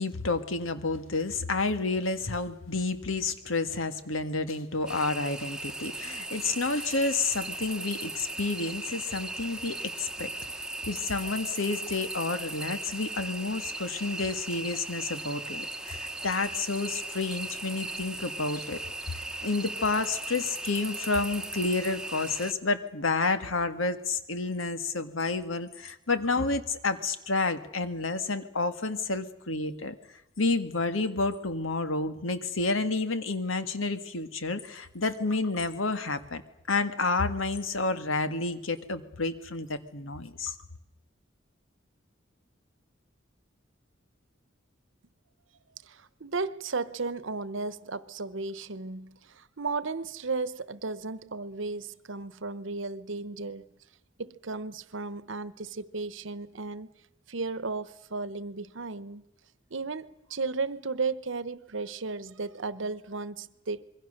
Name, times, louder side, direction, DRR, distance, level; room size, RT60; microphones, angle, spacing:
voice 1, 0.0-10.3 10.9-18.8 19.1-30.0 30.4-36.4 36.7-40.5, left 3 dB, 85° left, 1.8 m, -30 dB
sound 1, 4.9-22.5, right 2 dB, 5° right, 1.2 m, -38 dB
voice 2, 45.8-53.6 54.2-56.9 57.3-59.2 59.7-63.8, right 3 dB, 70° right, 1.0 m, -34 dB
26.5 x 22.5 x 6.6 m
head